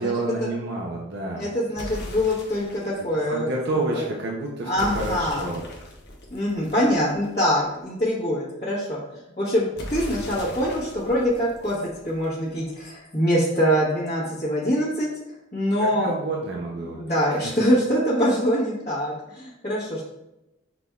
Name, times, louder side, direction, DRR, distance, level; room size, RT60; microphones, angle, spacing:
voice 1, 0.0-1.5 3.3-5.6 15.8-17.0 17.3-17.5, right 2 dB, 55° right, -2 dB, 0.6 m, -29 dB
voice 2, 1.4-3.5 4.6-5.5 6.3-9.0 9.4-11.8 12.0-15.1 15.5-16.1 16.9-20.0, equal, 35° left, -10 dB, 1.2 m, -24 dB
sound 1, 1.8-3.0 4.8-7.5 9.8-12.5, left 1 dB, 55° left, 0.8 m, -38 dB
5.8 x 3.4 x 2.3 m, 0.93 s
head